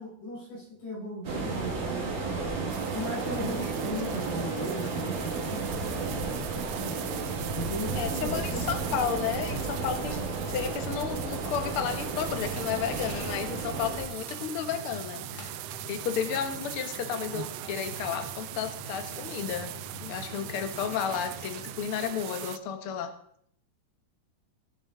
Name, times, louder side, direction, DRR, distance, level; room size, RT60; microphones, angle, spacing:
voice 1, 0.0-2.5 2.9-5.7 6.8-9.2, equal, 75° left, -7 dB, 7.8 m, -37 dB
sound 1, 1.2-14.0, right 3 dB, 50° right, 2.8 m, -33 dB
sound 2, 2.7-22.6, right 15 dB, 80° right, 2.3 m, -40 dB
voice 2, 7.9-15.5 15.9-19.7 20.0-23.1, left 8 dB, 90° left, 6 dB, 1.2 m, -32 dB
sound 3, 12.3-21.8, equal, 50° left, 2.2 m, -45 dB
20.0 x 6.8 x 3.9 m, 0.67 s
omnidirectional pair, 4.4 m